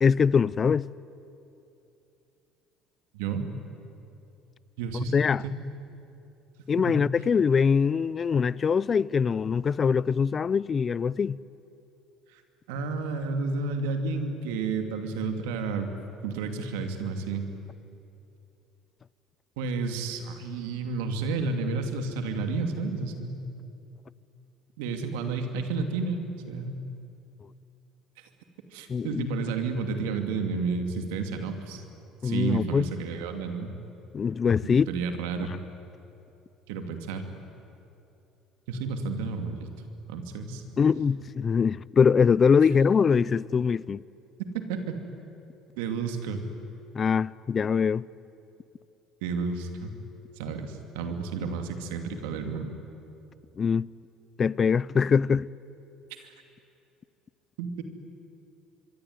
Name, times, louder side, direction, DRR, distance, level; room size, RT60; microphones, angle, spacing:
voice 1, 0.0-0.9 4.9-5.4 6.7-11.4 28.9-29.3 32.2-32.9 34.1-34.9 40.8-44.0 46.9-48.1 53.6-53.9 54.4-55.5, left 6 dB, 35° left, 0.5 m, -23 dB
voice 2, 3.1-3.5 4.8-5.1 5.4-5.5 6.9-7.0 12.3-12.4 12.7-15.9 16.2-17.5 19.6-23.4 24.8-26.2 26.5-26.8 28.2-28.3 28.7-31.8 32.2-33.7 34.6-35.5 36.7-37.2 38.7-39.7 40.1-40.6 44.7-45.0 45.8-46.4 49.2-49.9 50.4-52.7 56.2-56.3 57.6-57.8, right 4 dB, 85° right, 2.7 m, -31 dB
25.0 x 23.5 x 9.7 m
supercardioid pair, 90°, 0 cm